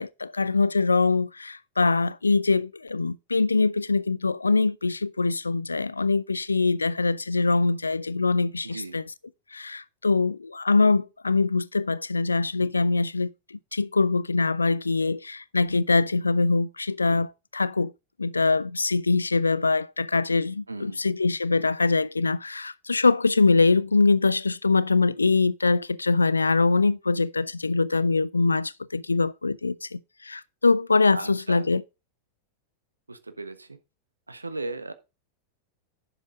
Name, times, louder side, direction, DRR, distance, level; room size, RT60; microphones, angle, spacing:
voice 1, 0.0-9.0 9.5-17.9 18.2-31.8, left 3 dB, 80° left, 0.4 m, -23 dB
voice 2, 8.6-9.0 20.7-21.0 31.1-31.7 33.1-33.8 34.3-34.9, right 2 dB, 80° right, 1.2 m, -36 dB
11.0 x 7.2 x 3.8 m
figure-of-eight pair, 90°, 0 cm